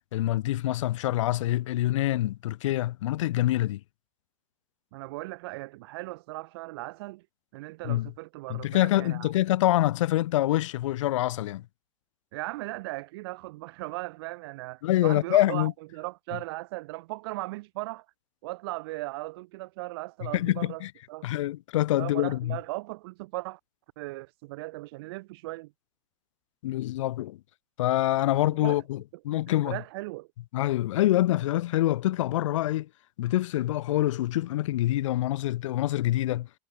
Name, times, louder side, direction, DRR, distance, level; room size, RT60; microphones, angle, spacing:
voice 1, 0.1-3.8 7.8-8.1 8.5-11.6 14.8-15.7 20.2-20.9 21.2-22.6 26.6-27.4 27.8-29.8 30.5-32.9 33.2-36.5, left 15 dB, 65° left, 3.7 m, -26 dB
voice 2, 4.9-7.2 7.5-9.3 12.3-18.1 18.4-20.8 21.1-21.3 22.0-23.6 24.0-25.7 28.5-28.8 29.6-30.3, right 21 dB, 50° right, 5.4 m, -37 dB
supercardioid pair, 180°, 17 cm